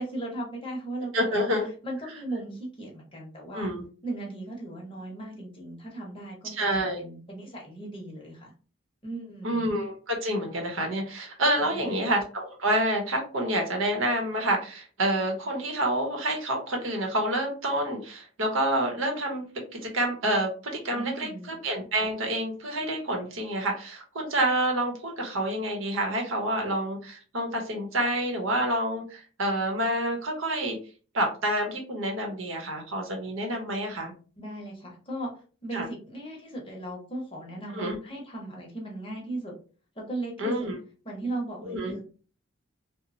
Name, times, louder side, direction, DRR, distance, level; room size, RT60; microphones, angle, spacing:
voice 1, 0.0-1.4 1.8-3.7 4.0-8.5 9.0-9.6 11.6-12.1 20.9-21.5 34.4-39.5 40.0-40.5 41.0-42.0, right 1 dB, 25° left, -1 dB, 0.7 m, -37 dB
voice 2, 1.1-1.7 3.5-3.8 6.5-7.0 9.4-19.4 19.8-30.8 31.1-34.1 35.7-35.9 37.7-38.0 40.4-40.8 41.7-41.9, right 1 dB, 80° right, 2 dB, 0.8 m, -28 dB
3.0 x 2.0 x 2.5 m, 0.38 s
head